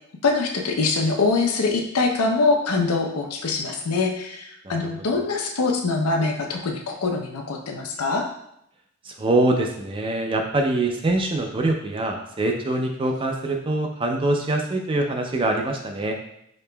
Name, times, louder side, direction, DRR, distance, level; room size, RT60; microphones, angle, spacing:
voice 1, 0.2-8.3, left 3 dB, 90° left, 2 dB, 0.6 m, -23 dB
voice 2, 4.6-5.2 9.0-16.2, right 2 dB, 25° right, 3 dB, 0.4 m, -24 dB
5.1 x 2.9 x 2.2 m, 0.77 s
head